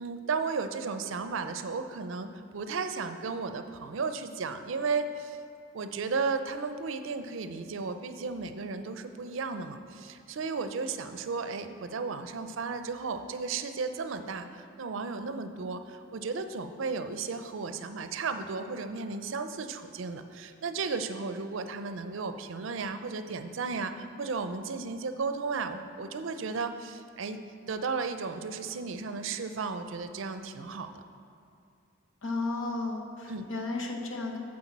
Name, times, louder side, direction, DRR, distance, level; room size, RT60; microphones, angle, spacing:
voice 1, 0.0-5.4 5.7-27.4 27.7-31.0 33.3-33.5, right 4 dB, 70° right, 9 dB, 0.5 m, -34 dB
voice 2, 32.2-34.4, left 3 dB, 75° left, 1 dB, 1.0 m, -33 dB
7.9 x 4.8 x 7.2 m, 2.5 s
head